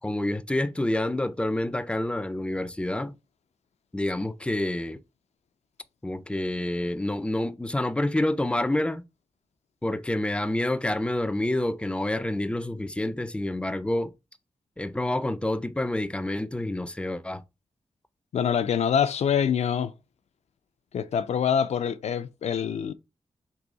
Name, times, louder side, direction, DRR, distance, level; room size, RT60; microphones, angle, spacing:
voice 1, 0.0-3.2 3.9-5.0 6.0-9.0 9.8-14.1 14.8-17.4, left 1 dB, 10° left, 0.4 m, -28 dB
voice 2, 18.3-19.9 20.9-22.9, left 8 dB, 80° left, 0.4 m, -25 dB
4.0 x 2.7 x 4.7 m
wide cardioid pair, 85°, 11 cm